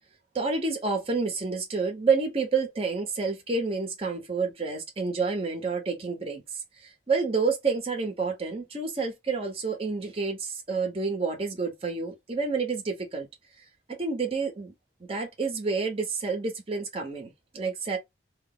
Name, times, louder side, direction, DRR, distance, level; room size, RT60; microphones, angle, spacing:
voice 1, 0.3-6.4 7.1-13.3 13.9-14.7 15.1-18.0, right 4 dB, 30° right, 0.7 m, -29 dB
2.4 x 2.0 x 3.6 m
head